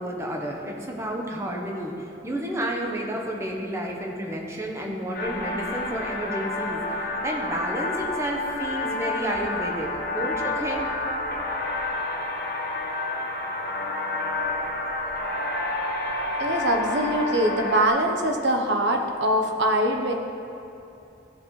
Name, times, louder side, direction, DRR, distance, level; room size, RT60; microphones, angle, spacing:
voice 1, 0.0-6.8 7.2-10.9, right 1 dB, 15° right, -1 dB, 1.0 m, -31 dB
sound 1, 5.1-17.9, left 2 dB, 55° left, 1.1 m, -29 dB
voice 2, 16.4-20.1, right 1 dB, 75° right, 3 dB, 1.0 m, -23 dB
15.5 x 7.0 x 3.2 m, 2.8 s
head